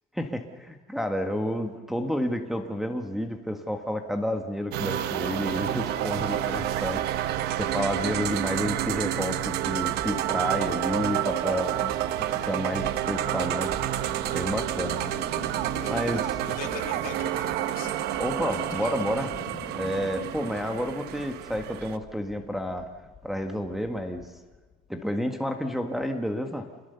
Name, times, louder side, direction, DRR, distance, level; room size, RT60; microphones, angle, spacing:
voice 1, 0.1-11.9 12.2-13.7 14.3-15.0 15.3-15.5 15.9-16.2 18.2-19.3 19.7-22.9 23.2-24.3 24.9-26.7, equal, ahead, 3 dB, 1.5 m, -30 dB
sound 1, 4.7-22.0, right 12 dB, 80° right, 1.1 m, -29 dB
sound 2, 9.4-24.9, left 6 dB, 30° left, 1.6 m, -46 dB
voice 2, 15.8-17.9 18.7-19.0, left 9 dB, 60° left, 4 dB, 2.9 m, -42 dB
27.0 x 21.5 x 6.9 m, 1.3 s
cardioid pair, 155°, 17 cm